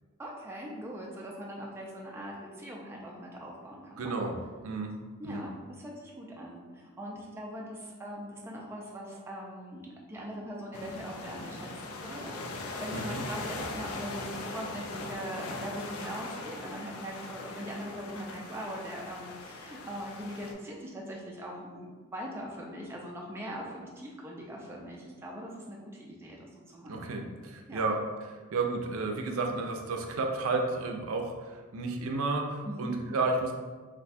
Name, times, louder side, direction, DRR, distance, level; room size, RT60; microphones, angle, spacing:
voice 1, 0.2-4.1 5.2-5.5 5.8-27.0 27.7-27.8 32.6-33.0, equal, 10° right, -3 dB, 0.3 m, -41 dB
voice 2, 4.0-4.4 4.6-4.9 5.2-5.5 12.9-13.2 26.9-33.5, right 3 dB, 75° right, 3 dB, 0.4 m, -32 dB
sound 1, 10.7-20.5, left 2 dB, 80° left, 0.4 m, -40 dB
2.5 x 2.2 x 4.0 m, 1.4 s
head